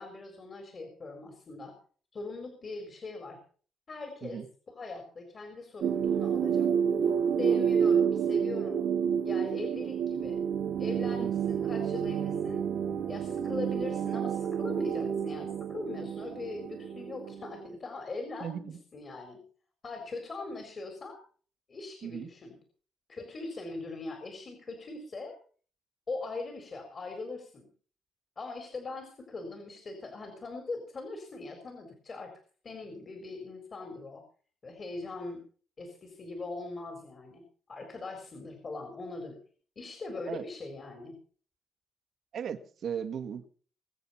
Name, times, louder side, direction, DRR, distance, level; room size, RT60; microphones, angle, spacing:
voice 1, 0.0-1.7 2.1-3.4 3.9-4.4 4.7-6.7 7.4-8.9 9.2-10.4 10.8-12.7 13.1-18.6 18.9-19.4 19.8-21.2 21.7-22.6 23.1-25.4 26.1-27.7 28.4-32.3 32.6-34.2 34.6-35.4 35.8-37.4 37.7-39.4 39.8-41.2, left 3 dB, 40° left, 4.2 m, -41 dB
sound 1, 5.8-17.7, right 7 dB, 80° right, 2.1 m, -29 dB
voice 2, 18.4-18.8 22.0-22.3 40.3-40.4 42.3-43.5, right 8 dB, 65° right, 1.7 m, -37 dB
22.5 x 8.0 x 5.7 m
cardioid pair, 90°, 0 cm